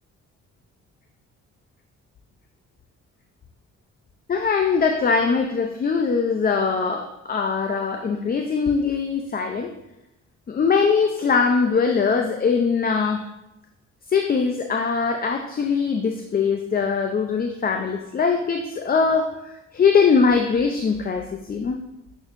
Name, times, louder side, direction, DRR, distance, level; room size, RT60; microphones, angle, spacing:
voice 1, 4.3-9.7 10.5-13.2 14.1-21.8, left 5 dB, 30° left, 4 dB, 0.5 m, -21 dB
8.8 x 4.4 x 2.6 m, 0.91 s
cardioid pair, 90°, 30 cm